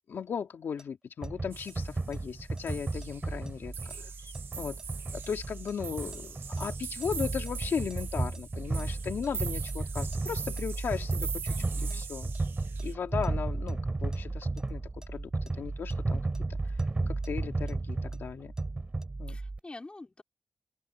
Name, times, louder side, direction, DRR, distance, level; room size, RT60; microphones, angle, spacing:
voice 1, 0.1-4.8 5.1-12.3 12.8-16.2 16.5-18.5 19.2-19.4, left 7 dB, 85° left, 2.0 m, -37 dB
sound 1, 0.8-6.6 7.0-9.4 9.7-9.8 10.1-10.6 11.0-14.2 14.6-14.7 15.0-15.1 15.5-15.6 15.9-18.6 19.0-19.1, right 1 dB, 15° right, 7.3 m, -57 dB
sound 2, 1.2-19.6, right 2 dB, 30° right, 5.0 m, -34 dB
sound 3, 1.5-2.2 2.6-3.5 3.7-12.9, right 7 dB, 85° right, 1.1 m, -42 dB
voice 2, 11.5-12.1 19.3-20.2, left 2 dB, 30° left, 3.7 m, -47 dB
open air
cardioid pair, 70°, 4 cm